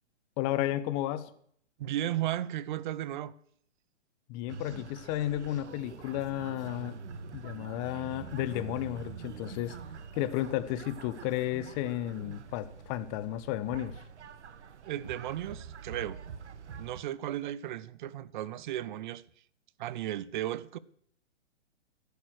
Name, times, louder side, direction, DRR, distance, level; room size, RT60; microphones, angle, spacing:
voice 1, 0.4-1.3 4.3-7.0 7.3-9.8 10.1-13.9, left 13 dB, 30° left, 1.1 m, -33 dB
voice 2, 1.8-3.3 14.9-16.2 16.8-19.2 19.8-20.8, right 12 dB, 40° right, 0.8 m, -35 dB
sound 1, 4.5-17.0, right 6 dB, 70° right, 1.4 m, -45 dB
14.0 x 12.0 x 6.5 m
hypercardioid pair, 130°, 35 cm